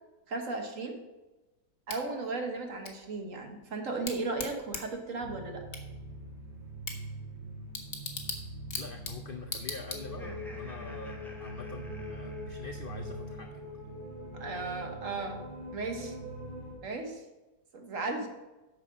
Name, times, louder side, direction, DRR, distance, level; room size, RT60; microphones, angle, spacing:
voice 1, 0.3-1.0 1.9-5.6 14.3-15.4 15.7-16.1 16.8-17.2 17.7-18.3, right 3 dB, 55° right, 4 dB, 1.4 m, -35 dB
Bicycle / Tick, 1.9-10.5, left 4 dB, 40° left, 1.1 m, -42 dB
sound 1, 5.2-16.7, right 1 dB, 90° right, 3.1 m, -43 dB
voice 2, 8.8-13.8, left 4 dB, 80° left, 4 dB, 0.4 m, -45 dB
Laughter, 10.0-13.2, equal, ahead, 0.9 m, -52 dB
8.6 x 5.9 x 5.4 m, 1.1 s
omnidirectional pair, 1.8 m